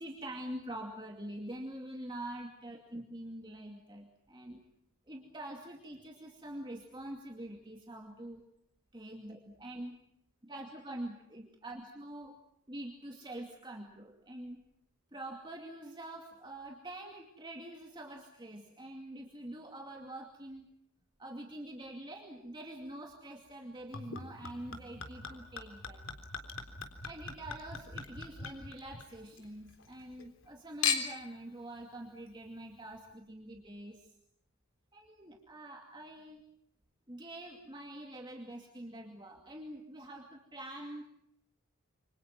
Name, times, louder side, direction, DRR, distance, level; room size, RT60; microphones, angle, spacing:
voice 1, 0.0-4.6 5.1-8.5 8.9-10.0 10.5-12.4 12.7-14.6 15.1-20.7 21.2-26.0 27.0-34.1 34.9-36.4 37.1-41.0, right 1 dB, 20° right, 2 dB, 2.4 m, -45 dB
Chink clink / Liquid, 23.9-29.4 29.8-30.5 30.8-31.3 32.1-32.2, left 6 dB, 60° left, 3.7 m, -39 dB
28.0 x 26.0 x 6.0 m, 0.74 s
head